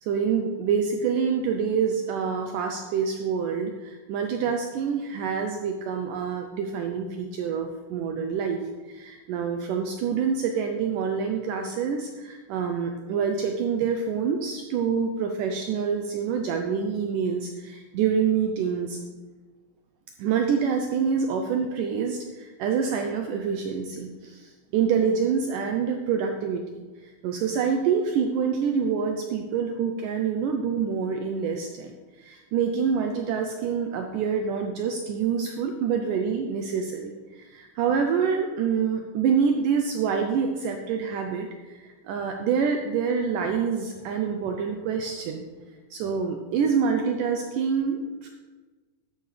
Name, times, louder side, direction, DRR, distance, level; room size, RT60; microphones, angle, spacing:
voice 1, 0.0-8.6 8.9-19.0 20.2-26.6 27.0-45.5 45.9-48.3, right 6 dB, 90° right, 4 dB, 1.8 m, -26 dB
12.5 x 10.5 x 3.3 m, 1.3 s
omnidirectional pair, 4.6 m